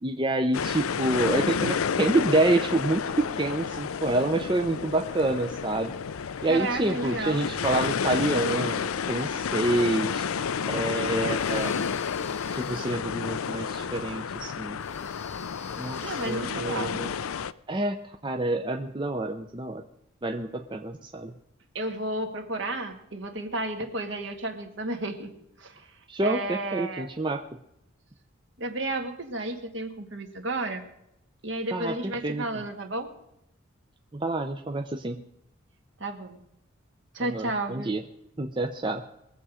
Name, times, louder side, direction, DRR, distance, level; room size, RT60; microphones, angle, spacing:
voice 1, 0.0-5.9 6.4-10.3 10.7-11.8 12.5-14.8 15.8-17.1 17.7-19.8 20.2-21.3 26.1-27.4 31.7-32.0 32.2-32.4 34.1-35.2 37.2-38.0 38.4-39.0, right 2 dB, 25° right, 5 dB, 0.6 m, -27 dB
sound 1, 0.5-17.5, left 6 dB, 90° left, 0.5 m, -30 dB
voice 2, 6.5-7.5 16.0-17.0 21.8-25.3 25.6-27.1 28.6-30.9 31.4-33.1 36.0-36.4 37.1-37.9, right 2 dB, 60° right, 5 dB, 1.7 m, -32 dB
sound 2, 11.3-13.0 14.8-16.5, left 4 dB, 30° left, 1.0 m, -46 dB
21.5 x 7.7 x 5.0 m, 0.81 s
head